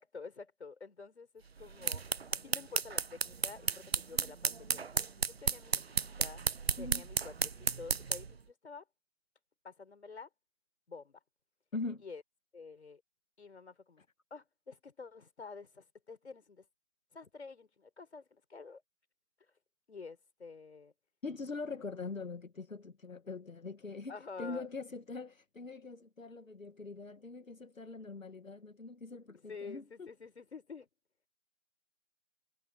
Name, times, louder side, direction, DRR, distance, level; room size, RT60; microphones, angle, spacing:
voice 1, 0.0-2.0 2.4-5.8 6.2-6.4 6.8-8.8 9.6-10.3 10.9-11.2 12.0-12.2 12.5-13.0 13.4-14.1 14.3-16.7 17.1-18.8 19.9-20.9 24.1-24.7 27.2-27.3 29.5-30.9, left 4 dB, 55° left, 4.5 m, -49 dB
sound 1, 1.6-8.4, right 5 dB, 50° right, 0.9 m, -34 dB
voice 2, 11.7-12.0 21.2-30.1, left 3 dB, 75° left, 2.2 m, -43 dB
figure-of-eight pair, 165°, 40 cm